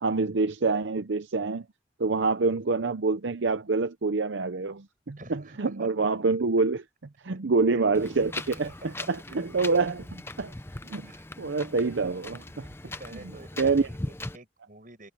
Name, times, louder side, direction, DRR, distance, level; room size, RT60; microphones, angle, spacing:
voice 1, 0.0-1.6 2.0-6.8 7.2-10.5 10.9-11.1 11.4-12.7 13.6-13.9, right 3 dB, 80° right, 0.7 m, -26 dB
voice 2, 5.2-5.9 7.7-7.8 8.5-9.1 11.0-11.3 12.8-15.1, right 2 dB, 45° right, 7.6 m, -48 dB
Wind, 7.9-14.4, left 2 dB, 15° left, 0.6 m, -40 dB
head